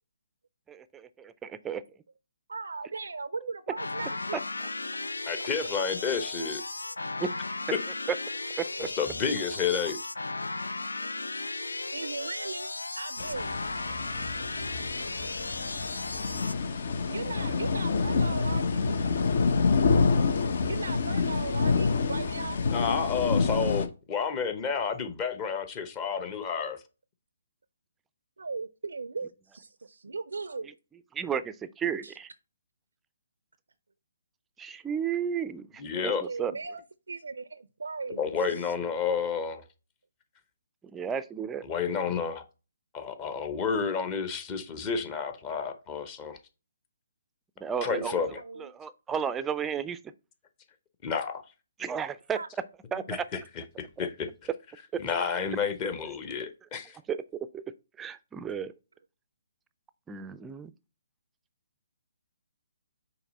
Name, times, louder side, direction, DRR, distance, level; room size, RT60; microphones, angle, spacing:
voice 1, 0.7-1.8 3.4-3.5 7.2-7.3 8.1-8.2 8.6-8.9 16.6-16.7 31.1-32.3 34.6-36.5 40.8-41.6 47.6-48.1 48.6-50.0 51.8-52.4 52.9-53.2 54.0-54.1 57.1-57.2 57.5-57.6 58.0-58.7 60.1-60.7, right 7 dB, 10° right, 0.4 m, -33 dB
voice 2, 2.5-4.4 6.8-7.2 11.9-13.6 13.9-14.0 17.1-18.9 20.6-22.6 28.4-30.7 32.0-32.1 36.2-36.8 37.1-38.7 47.8-48.7 52.3-52.5, right 4 dB, 75° right, 0.4 m, -38 dB
sound 1, 3.8-16.5, left 3 dB, 85° left, 0.3 m, -35 dB
voice 3, 5.2-6.6 9.0-10.0 22.7-26.8 35.8-36.2 38.2-39.6 41.7-42.4 42.9-46.4 47.8-48.4 51.0-51.4 53.1-53.2 53.8-54.3 55.0-57.0, left 6 dB, 25° left, 0.9 m, -30 dB
sound 2, 13.2-23.9, left 4 dB, 60° left, 0.8 m, -27 dB
5.8 x 4.1 x 4.1 m
figure-of-eight pair, 140°, 0 cm